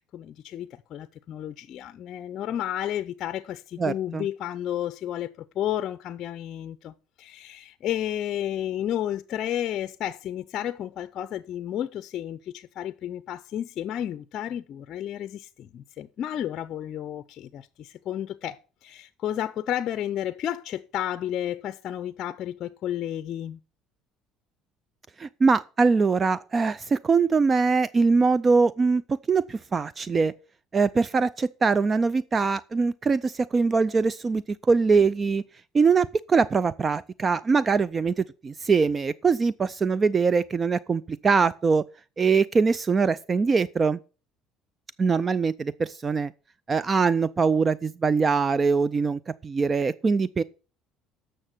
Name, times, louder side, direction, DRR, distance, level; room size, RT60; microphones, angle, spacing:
voice 1, 0.0-23.6, left 11 dB, 55° left, 0.5 m, -32 dB
voice 2, 3.8-4.3 25.2-29.0 29.3-30.3 30.7-35.4 35.7-41.8 42.2-44.0 45.0-46.3 46.7-50.4, right 4 dB, 30° right, 0.4 m, -23 dB
10.5 x 6.6 x 6.0 m
supercardioid pair, 95°, 0 cm